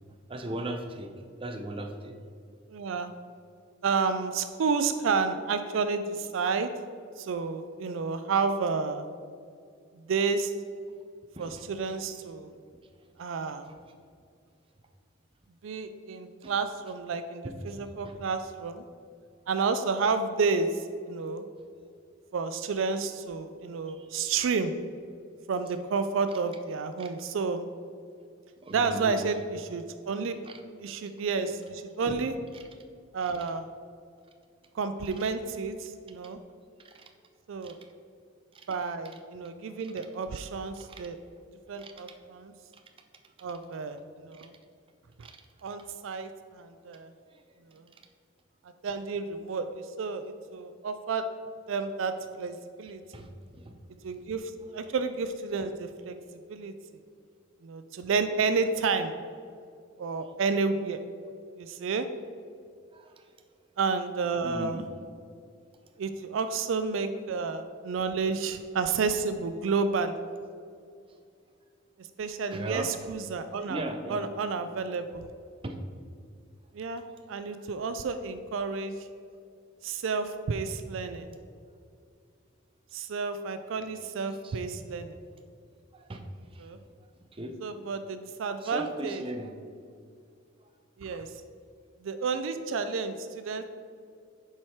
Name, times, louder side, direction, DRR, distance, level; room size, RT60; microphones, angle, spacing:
voice 1, 0.3-1.1 1.4-2.1 11.3-11.6 16.4-16.5 18.0-18.1 23.9-24.1 27.0-27.1 28.6-29.2 30.5-30.6 32.1-32.2 32.5-32.6 36.8-37.0 37.6-37.7 38.5-38.7 40.9-41.0 41.8-41.9 44.4-44.5 45.2-45.3 53.1-53.7 54.1-54.2 62.9-63.2 64.4-64.9 72.5-72.9 73.7-74.2 75.6-75.8 84.4-84.6 86.0-86.2 86.5-86.7 87.3-87.5 88.6-89.5, right 1 dB, 25° right, 5 dB, 0.6 m, -38 dB
voice 2, 2.7-3.1 3.8-6.7 7.2-9.0 10.1-10.5 11.4-12.5 13.2-13.7 15.6-18.8 19.5-21.4 22.3-24.7 25.5-27.7 28.7-30.3 30.8-32.4 33.1-33.7 34.7-36.4 37.5-37.8 38.7-41.2 41.7-42.5 43.4-44.5 45.6-47.1 47.7-47.8 48.8-51.3 51.7-53.0 54.0-56.2 56.5-56.7 57.6-59.1 60.0-61.0 61.6-62.1 63.8-64.9 66.0-70.2 72.0-75.2 76.7-77.0 77.3-78.9 79.8-81.3 82.9-85.2 86.6-86.8 87.6-89.2 91.0-91.3 92.0-93.6, right 4 dB, 70° right, 10 dB, 0.4 m, -30 dB
7.4 x 4.8 x 4.4 m, 2.3 s
head